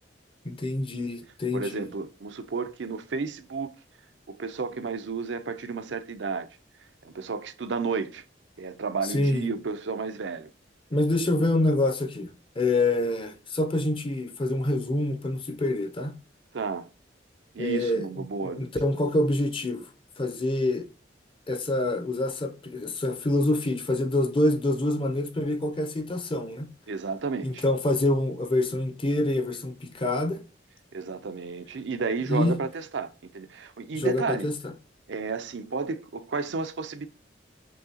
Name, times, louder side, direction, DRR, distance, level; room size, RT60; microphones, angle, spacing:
voice 1, 0.4-1.8 9.1-9.5 10.9-16.2 17.6-18.1 18.4-19.9 20.2-20.9 21.5-26.7 27.4-30.4 32.3-32.6 33.9-34.7, left 1 dB, 30° left, 0.6 m, -26 dB
voice 2, 1.5-3.7 4.3-6.5 7.0-8.2 8.6-10.5 11.4-11.5 16.5-16.9 17.5-18.7 26.9-27.6 30.9-34.5 35.1-37.1, right 4 dB, 70° right, 0.5 m, -32 dB
6.3 x 2.8 x 2.8 m
head